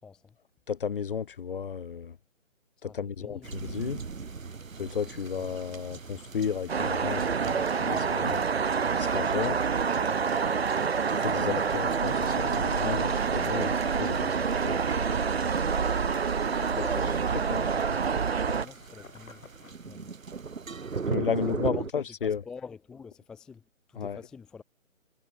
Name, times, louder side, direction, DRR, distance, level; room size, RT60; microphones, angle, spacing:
voice 1, 0.0-0.4 2.8-3.5 16.9-18.2 18.5-19.4 19.8-20.1 21.4-24.6, left 5 dB, ahead, 1.0 m, -47 dB
voice 2, 0.7-2.2 2.8-4.0 4.8-8.4 8.9-9.6 11.1-14.8 16.7-16.9 17.5-17.6 21.1-22.4 24.0-24.2, left 7 dB, 40° left, 4.4 m, -33 dB
sound 1, 3.4-21.9, right 5 dB, 75° right, 1.6 m, -40 dB
sound 2, 6.7-18.6, right 6 dB, 50° right, 2.4 m, -27 dB
sound 3, 13.5-19.7, left 4 dB, 70° left, 4.6 m, -49 dB
figure-of-eight pair, 160°, 41 cm